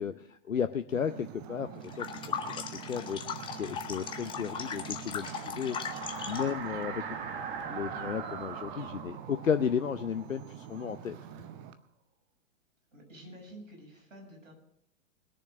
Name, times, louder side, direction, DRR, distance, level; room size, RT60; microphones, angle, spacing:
voice 1, 0.0-1.7 2.0-2.1 2.4-2.5 2.9-3.2 3.5-5.8 6.3-7.0 7.7-11.2, left 7 dB, 75° left, 9 dB, 0.8 m, -33 dB
Ocean, 0.9-11.7, right 9 dB, 20° right, 0.5 m, -46 dB
sound 1, 1.8-6.6, left 7 dB, 10° left, 0.9 m, -38 dB
sound 2, 2.7-11.4, right 6 dB, 40° right, 1.5 m, -43 dB
voice 2, 6.2-7.2 12.9-14.5, equal, 65° right, -1 dB, 7.1 m, -51 dB
20.5 x 7.0 x 6.3 m, 0.70 s
figure-of-eight pair, 110°, 40 cm